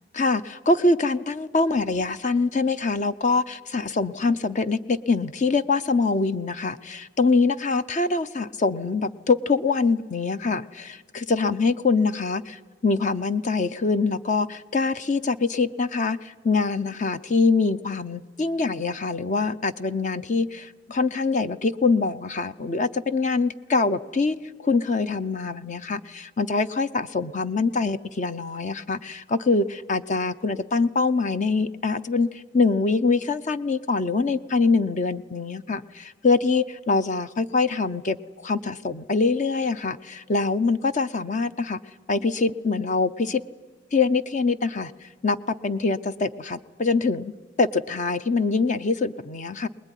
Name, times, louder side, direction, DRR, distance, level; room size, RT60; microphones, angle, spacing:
voice 1, 0.1-24.4 24.6-38.2 38.4-41.8 42.1-43.4 43.9-47.3 47.6-49.7, left 4 dB, 40° left, 12 dB, 0.7 m, -24 dB
23.5 x 20.5 x 10.0 m, 1.4 s
head